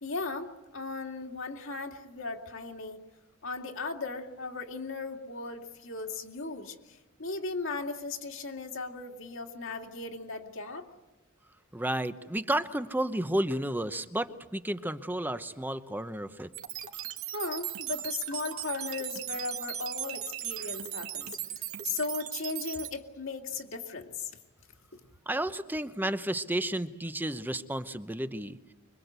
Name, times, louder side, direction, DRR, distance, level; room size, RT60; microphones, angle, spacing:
voice 1, 0.0-3.0 3.4-10.9 16.9-17.0 17.3-24.3 24.9-25.0, left 4 dB, 60° left, 3 dB, 2.4 m, -37 dB
voice 2, 11.7-16.5 25.3-28.6, right 1 dB, 10° right, 11 dB, 0.8 m, -32 dB
sound 1, 16.5-22.9, right 12 dB, 75° right, 2.4 m, -37 dB
25.5 x 23.5 x 8.2 m, 1.1 s
head